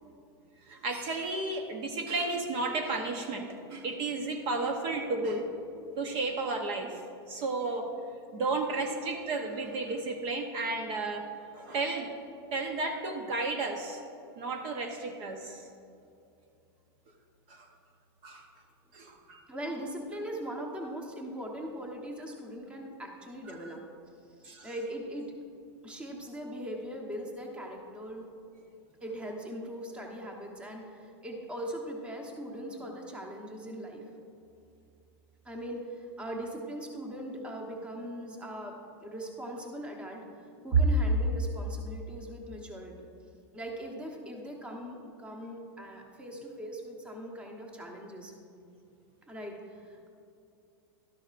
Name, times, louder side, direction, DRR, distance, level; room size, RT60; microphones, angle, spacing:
voice 1, 0.6-5.5 6.0-7.9 8.3-11.2 11.5-12.1 12.5-14.0 14.4-15.7 17.5-17.7 18.2-18.5 18.9-19.4 23.5-23.8 24.4-24.7, right 3 dB, 40° right, 4 dB, 0.8 m, -33 dB
voice 2, 19.5-23.8 24.4-25.3 25.8-28.2 29.0-34.1 35.4-43.1 43.5-48.3 49.3-50.1, right 1 dB, 10° right, 1 dB, 1.0 m, -40 dB
12.0 x 11.0 x 2.5 m, 2.6 s
supercardioid pair, 145°, 13 cm